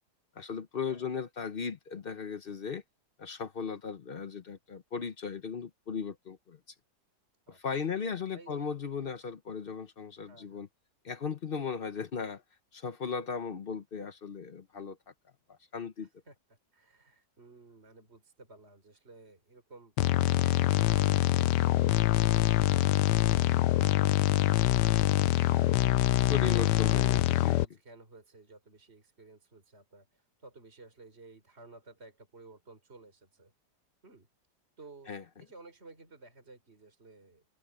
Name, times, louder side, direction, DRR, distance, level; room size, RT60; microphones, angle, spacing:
voice 1, 0.3-2.8 3.2-6.6 7.5-10.7 11.0-12.4 12.7-15.0 15.5-16.1 26.3-27.6 35.1-35.2, left 6 dB, 50° left, 0.7 m, -37 dB
voice 2, 7.5-8.7 10.3-10.7 16.0-19.9 20.7-33.5 34.0-34.3 34.8-35.1 35.4-37.4, right 3 dB, 35° right, 4.4 m, -54 dB
sound 1, 20.0-27.7, left 16 dB, 75° left, 1.2 m, -25 dB
omnidirectional pair, 1.9 m